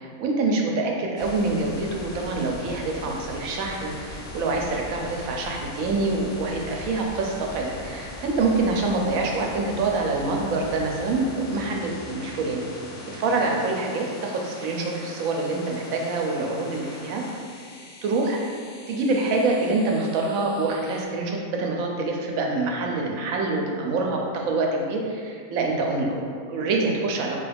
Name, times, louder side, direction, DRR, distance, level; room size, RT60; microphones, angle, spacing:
voice 1, 0.0-12.7 13.1-17.2 18.0-18.4 18.9-27.5, right 3 dB, 80° right, 0 dB, 1.0 m, -26 dB
sound 1, 1.2-21.1, left 2 dB, 65° left, 0.8 m, -40 dB
4.0 x 2.3 x 3.3 m, 2.2 s
omnidirectional pair, 1.4 m